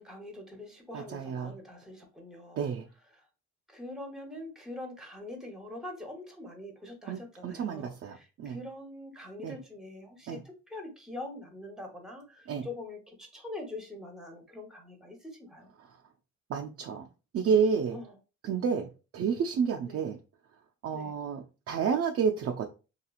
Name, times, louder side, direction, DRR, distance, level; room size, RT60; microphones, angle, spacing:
voice 1, 0.0-2.6 3.7-10.4 10.7-15.7 17.9-18.1 19.9-20.0 20.9-21.1, left 2 dB, ahead, 0.9 m, -44 dB
voice 2, 0.9-1.5 2.6-2.9 7.1-8.6 9.4-9.6 10.3-10.4 12.5-12.7 15.8-16.0 16.5-17.1 17.3-18.0 18.4-20.2 20.8-22.7, right 6 dB, 50° right, 0.4 m, -30 dB
2.9 x 2.4 x 2.3 m
cardioid pair, 90°, 30 cm